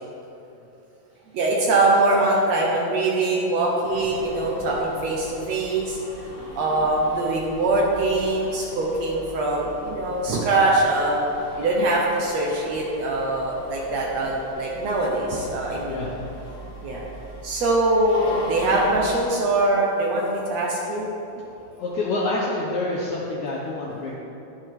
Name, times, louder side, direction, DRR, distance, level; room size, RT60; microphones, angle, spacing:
voice 1, 1.3-6.0 6.6-11.3 11.6-16.0 16.8-17.0 17.4-21.1, right 2 dB, 85° right, -3 dB, 1.5 m, -22 dB
sound 1, 3.8-19.0, equal, 35° left, 2.6 m, -40 dB
voice 2, 21.8-24.2, left 2 dB, 75° left, -3 dB, 1.7 m, -27 dB
13.0 x 10.5 x 3.6 m, 3.0 s
omnidirectional pair, 4.7 m